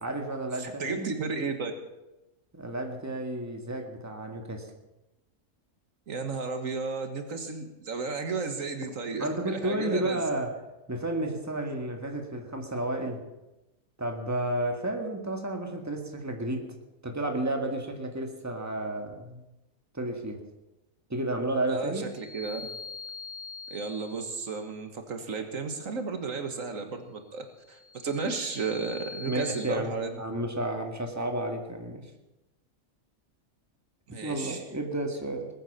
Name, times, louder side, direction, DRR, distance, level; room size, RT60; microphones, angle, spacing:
voice 1, 0.0-1.1 2.5-4.7 9.2-10.6 10.9-13.2 14.0-16.8 17.0-19.4 19.9-20.4 21.1-22.1 29.3-32.1 34.2-35.5, right 1 dB, 10° right, 3 dB, 1.8 m, -32 dB
voice 2, 0.6-1.7 6.1-10.2 21.7-22.6 23.7-30.1 34.1-34.6, right 4 dB, 75° right, 6 dB, 1.9 m, -33 dB
sound 1, 22.1-24.6 27.6-29.7, left 4 dB, 25° left, 0.8 m, -43 dB
19.5 x 9.0 x 6.8 m, 0.99 s
omnidirectional pair, 1.4 m